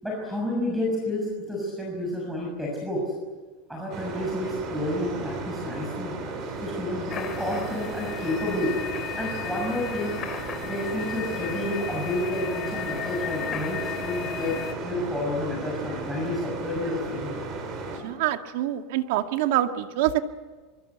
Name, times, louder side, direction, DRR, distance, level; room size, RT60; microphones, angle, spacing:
voice 1, 0.0-3.1 3.7-6.1 6.6-8.8 9.2-10.2 10.6-17.3, left 1 dB, 5° right, -2 dB, 6.5 m, -30 dB
sound 1, 3.9-18.0, right 3 dB, 45° right, 6.3 m, -35 dB
sound 2, 7.1-14.7, left 9 dB, 30° left, 3.4 m, -35 dB
voice 2, 18.0-20.2, right 13 dB, 75° right, 7 dB, 1.9 m, -25 dB
25.0 x 24.5 x 8.2 m, 1.4 s
supercardioid pair, 145°, 0 cm